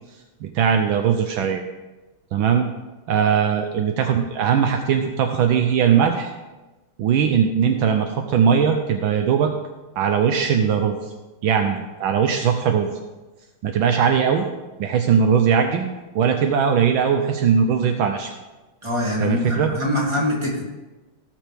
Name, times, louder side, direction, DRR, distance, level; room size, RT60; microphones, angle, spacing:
voice 1, 0.4-1.6 2.3-2.7 3.1-6.3 7.0-9.5 10.0-11.0 11.4-12.9 13.6-14.4 14.8-15.9 16.1-18.3 19.2-19.7, right 7 dB, 75° right, 5 dB, 1.4 m, -19 dB
voice 2, 18.8-20.7, left 1 dB, 15° right, -4 dB, 2.4 m, -23 dB
17.5 x 6.1 x 3.4 m, 1.1 s
omnidirectional pair, 2.3 m